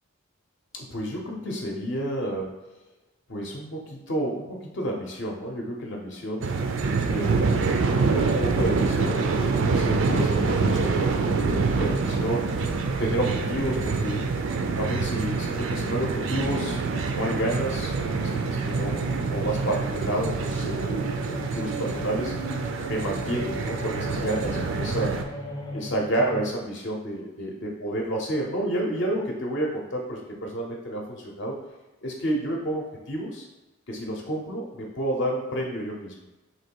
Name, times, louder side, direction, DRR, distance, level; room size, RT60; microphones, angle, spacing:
voice 1, 0.7-2.6 3.3-6.5 7.1-12.5 13.0-14.3 14.8-16.8 17.1-22.3 22.9-25.2 25.7-31.6 32.0-33.5 33.9-36.3, right 1 dB, 55° left, 0 dB, 0.6 m, -30 dB
sound 1, 6.4-25.2, right 4 dB, 60° right, 0.4 m, -26 dB
sound 2, 7.1-15.3 15.6-26.5, equal, 20° left, 0.4 m, -39 dB
3.0 x 2.9 x 4.5 m, 1.1 s
head